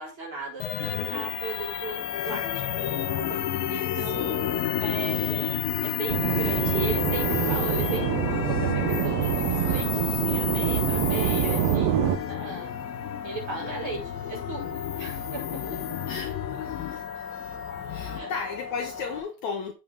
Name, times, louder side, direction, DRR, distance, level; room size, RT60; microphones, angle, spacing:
voice 1, 0.0-2.7 3.1-3.4 3.7-12.7 13.2-14.6 14.9-16.0 18.1-18.3, right 4 dB, 35° right, 5.6 m, -37 dB
sound 1, 0.6-18.2, left 12 dB, 90° left, 2.7 m, -31 dB
sound 2, 0.8-19.2, left 5 dB, 5° left, 5.3 m, -39 dB
voice 2, 3.9-4.3 9.4-9.6 12.4-12.8 15.1-15.3 16.1-17.3 17.9-19.7, left 5 dB, 65° left, 2.1 m, -36 dB
sound 3, 6.1-12.2, right 10 dB, 85° right, 1.4 m, -25 dB
7.8 x 7.1 x 3.6 m
omnidirectional pair, 4.1 m